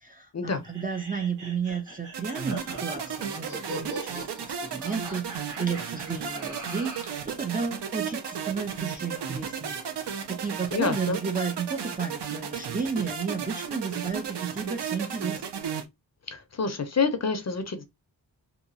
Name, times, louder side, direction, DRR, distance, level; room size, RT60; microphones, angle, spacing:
voice 1, 0.0-4.3 4.6-9.8 10.3-15.4, right 5 dB, 20° right, 0.3 m, -32 dB
sound 1, 0.6-7.2, right 2 dB, 45° right, 1.1 m, -41 dB
sound 2, 2.1-15.8, right 7 dB, 75° right, 0.6 m, -34 dB
voice 2, 10.7-11.2 16.3-17.8, left 4 dB, 40° left, 0.5 m, -27 dB
2.9 x 2.2 x 2.5 m
wide cardioid pair, 100°, 42 cm